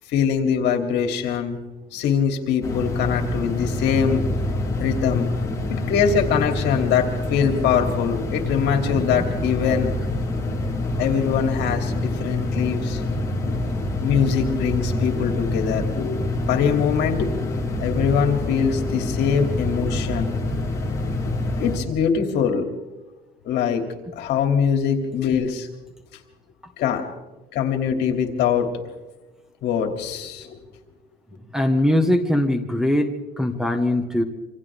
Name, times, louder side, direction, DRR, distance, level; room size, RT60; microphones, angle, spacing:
voice 1, 0.1-1.6 1.9-4.3 4.8-5.3 5.7-9.9 11.0-13.7 14.0-17.3 17.8-20.3 21.6-22.7 23.4-23.8 24.2-25.7 26.8-27.0 27.5-28.7 29.6-30.6, left 7 dB, 75° left, 4 dB, 3.0 m, -23 dB
sound 1, 2.6-21.8, left 2 dB, 20° left, 3.9 m, -26 dB
voice 2, 8.8-9.2 31.5-34.2, left 1 dB, 5° right, 6 dB, 1.6 m, -22 dB
27.5 x 26.0 x 3.7 m, 1.1 s
cardioid pair, 145°, 18 cm